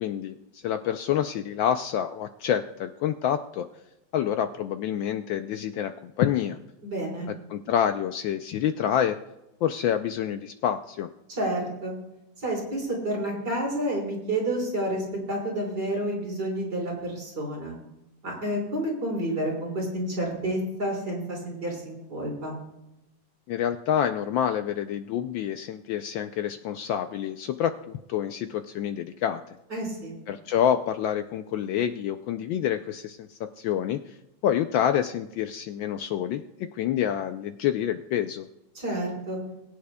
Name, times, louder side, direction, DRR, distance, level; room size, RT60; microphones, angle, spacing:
voice 1, 0.0-3.7 4.1-6.6 7.5-9.2 9.6-11.1 23.5-29.4 30.3-34.1 34.4-38.5, left 9 dB, 75° left, 8 dB, 1.2 m, -27 dB
voice 2, 6.8-7.3 11.3-11.9 12.4-17.7 18.2-22.5 29.7-30.1 38.7-39.4, right 1 dB, 50° right, -3 dB, 4.9 m, -30 dB
21.5 x 9.5 x 2.2 m, 0.93 s
omnidirectional pair, 2.4 m